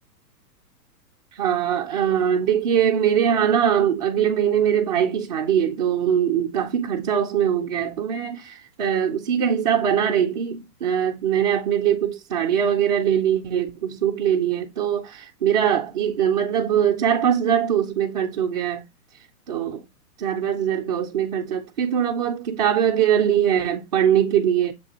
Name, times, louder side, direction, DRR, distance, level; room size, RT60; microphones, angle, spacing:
voice 1, 1.4-18.8 19.5-19.8 20.2-24.7, right 9 dB, 30° right, 0.4 m, -22 dB
6.7 x 2.7 x 2.8 m
hypercardioid pair, 125°, 47 cm